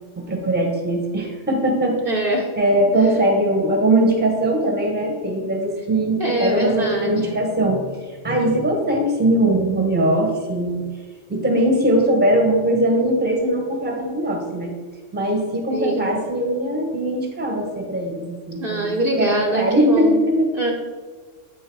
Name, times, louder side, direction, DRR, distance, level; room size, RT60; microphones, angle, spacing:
voice 1, 0.2-2.0 2.6-7.9 8.2-10.8 11.3-14.7 15.1-20.5, right 1 dB, 10° right, 1 dB, 0.9 m, -20 dB
voice 2, 2.1-2.5 6.2-7.5 15.7-16.1 18.6-20.2 20.5-20.7, right 2 dB, 50° right, -1 dB, 1.0 m, -23 dB
7.8 x 4.6 x 4.6 m, 1.5 s
omnidirectional pair, 1.3 m